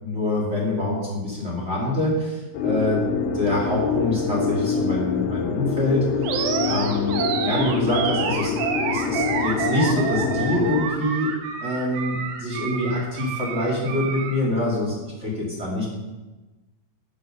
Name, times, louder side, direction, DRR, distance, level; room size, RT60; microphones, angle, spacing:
voice 1, 0.0-3.0 3.3-6.1 6.6-8.6 8.9-11.3 11.6-15.8, left 1 dB, 20° right, -4 dB, 1.8 m, -25 dB
sound 1, 2.5-10.9, left 5 dB, 85° left, 4.0 m, -26 dB
Animal, 6.2-14.4, right 6 dB, 75° right, 3.3 m, -28 dB
13.5 x 7.3 x 5.3 m, 1.2 s
omnidirectional pair, 5.9 m